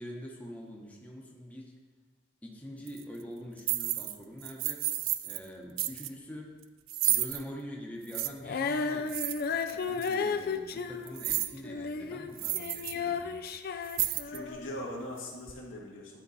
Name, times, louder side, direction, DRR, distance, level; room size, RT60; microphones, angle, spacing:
voice 1, 0.0-1.8 2.4-4.9 5.2-6.6 7.0-9.1 9.7-13.4, equal, 10° left, -2 dB, 0.9 m, -44 dB
sound 1, 2.9-3.0 3.6-4.1 4.4-5.4 5.8-6.1 6.9-7.4 8.1-8.3 9.1-9.7 10.0-10.1 11.1-11.6 11.9-12.0 12.4-12.9 13.3-13.4 13.8-14.5, right 14 dB, 80° right, 0.4 m, -31 dB
Female singing, 8.4-14.8 15.5-15.6, left 5 dB, 50° left, 0.4 m, -34 dB
voice 2, 14.2-16.2, left 1 dB, 80° left, -3 dB, 1.9 m, -41 dB
11.0 x 4.5 x 4.1 m, 1.3 s
head